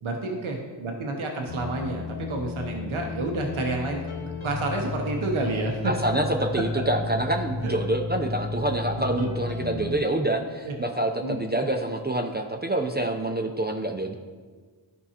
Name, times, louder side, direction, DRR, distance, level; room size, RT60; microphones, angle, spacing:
voice 1, 0.0-5.9 6.5-6.6 7.6-7.8 9.2-9.3 9.7-9.9 10.6-10.7 11.2-11.4, right 2 dB, 80° right, 2 dB, 0.9 m, -30 dB
sound 1, 1.5-10.0, left 4 dB, 75° left, 0.9 m, -33 dB
voice 2, 5.8-14.1, right 1 dB, 20° right, 3 dB, 0.5 m, -27 dB
11.5 x 4.7 x 2.8 m, 1.5 s
wide cardioid pair, 50°, 48 cm